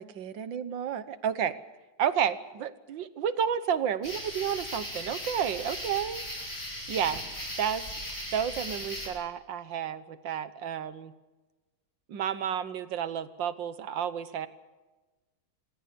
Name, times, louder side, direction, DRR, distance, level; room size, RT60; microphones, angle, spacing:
voice 1, 0.0-1.6 2.0-6.6 6.9-7.2 7.6-7.9 8.3-11.1 12.1-14.5, right 8 dB, 75° right, 13 dB, 1.8 m, -31 dB
sound 1, 4.0-9.1, equal, 30° left, 7.7 m, -38 dB
27.0 x 18.0 x 6.9 m, 1.2 s
omnidirectional pair, 2.1 m